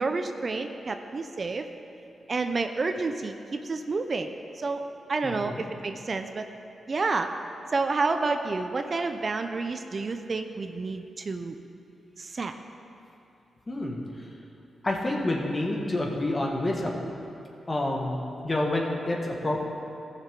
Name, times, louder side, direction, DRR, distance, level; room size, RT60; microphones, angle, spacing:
voice 1, 0.0-1.6 2.3-4.3 4.6-4.8 5.1-6.5 6.9-7.3 7.7-11.6 12.2-12.5, right 3 dB, 50° right, 7 dB, 0.6 m, -29 dB
voice 2, 5.2-5.7 13.7-14.0 14.8-16.9 17.7-19.6, left 1 dB, 30° left, -1 dB, 1.7 m, -28 dB
14.5 x 6.5 x 3.8 m, 2.8 s
supercardioid pair, 50°, 0 cm